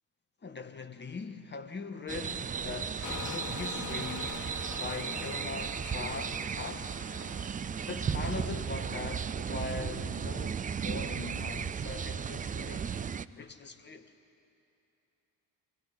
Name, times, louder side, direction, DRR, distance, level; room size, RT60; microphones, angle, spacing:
voice 1, 0.4-4.4 4.8-7.0 7.9-12.9 13.3-14.1, left 4 dB, 25° left, 1.6 m, -41 dB
sound 1, 2.1-13.2, right 7 dB, 20° right, 0.5 m, -35 dB
sound 2, 2.6-8.4, equal, 85° right, 2.4 m, -56 dB
sound 3, 3.0-8.5, left 10 dB, 55° left, 1.0 m, -45 dB
25.0 x 18.0 x 10.0 m
figure-of-eight pair, 45°, 42 cm